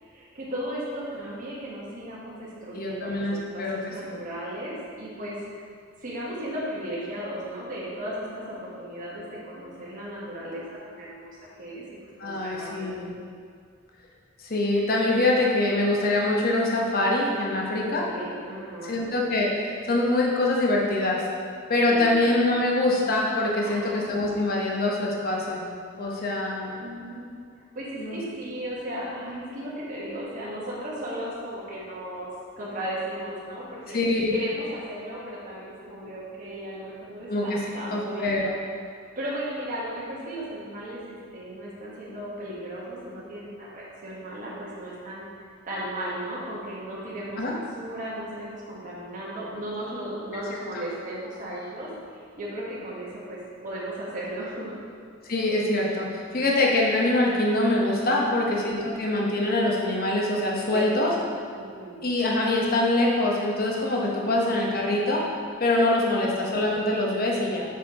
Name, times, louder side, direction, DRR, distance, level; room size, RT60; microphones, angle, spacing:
voice 1, 0.0-5.6 6.0-11.3 11.6-11.8 12.2-13.0 17.8-19.1 21.9-22.3 23.6-24.0 26.1-26.3 26.8-27.3 27.7-32.3 32.6-34.0 34.3-38.5 39.1-45.2 45.6-51.9 52.1-54.8 58.2-58.7 60.7-61.0 61.5-62.0 64.1-64.3 66.2-66.4, right 1 dB, 40° right, -7 dB, 1.3 m, -36 dB
voice 2, 2.7-4.2 12.2-13.1 14.4-18.0 18.8-21.2 21.7-25.6 26.0-26.7 28.0-28.2 33.9-34.3 37.3-37.6 37.9-38.5 47.4-47.6 55.3-61.1 62.0-65.3 65.6-67.6, left 2 dB, 45° left, -2 dB, 1.0 m, -24 dB
6.0 x 4.4 x 4.8 m, 2.2 s
head